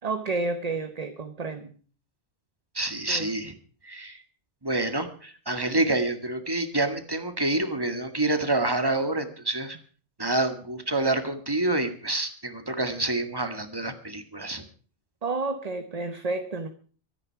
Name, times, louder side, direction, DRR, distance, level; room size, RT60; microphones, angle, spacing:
voice 1, 0.0-1.8 3.1-3.3 15.2-16.7, right 3 dB, 35° right, 1.1 m, -30 dB
voice 2, 2.7-3.5 3.8-4.2 4.6-9.8 10.2-14.7, right 2 dB, 20° right, 1.9 m, -27 dB
24.5 x 9.7 x 4.7 m
omnidirectional pair, 1.2 m